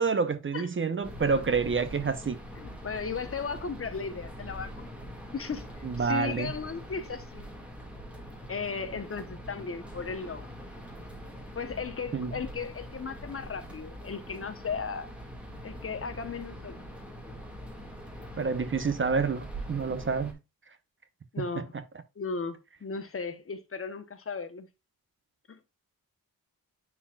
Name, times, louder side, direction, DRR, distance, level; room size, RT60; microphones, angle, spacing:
voice 1, 0.0-2.4 5.8-6.5 12.1-12.3 18.4-20.4, right 5 dB, 35° right, 0.6 m, -28 dB
sound 1, 1.0-20.3, equal, 5° right, 1.7 m, -43 dB
voice 2, 2.6-4.9 5.3-5.7 5.9-7.4 8.5-10.5 11.5-15.1 15.6-16.8 21.3-21.7 22.2-24.7 25.5-25.6, left 5 dB, 40° left, 0.9 m, -36 dB
9.9 x 4.3 x 2.2 m
wide cardioid pair, 155°, 36 cm